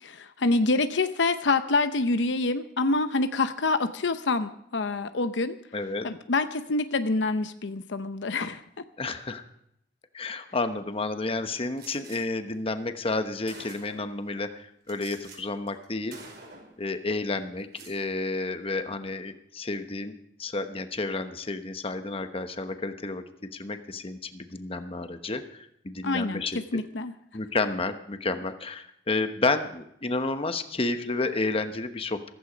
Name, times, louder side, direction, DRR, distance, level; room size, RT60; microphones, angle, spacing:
voice 1, 0.0-5.6 6.0-8.6 26.0-27.1, left 3 dB, 75° left, 10 dB, 0.7 m, -26 dB
voice 2, 5.7-6.1 9.0-9.4 10.1-16.2 16.8-23.2 23.5-26.8 27.3-32.3, left 3 dB, 30° left, 8 dB, 1.1 m, -31 dB
Gunshot gunfire, 11.8-12.2 13.0-13.1 13.5-14.1 14.9-15.4 15.7-15.8 16.1-16.8 17.6-18.0, right 3 dB, 60° right, 5.1 m, -47 dB
15.0 x 14.5 x 5.1 m, 0.74 s
head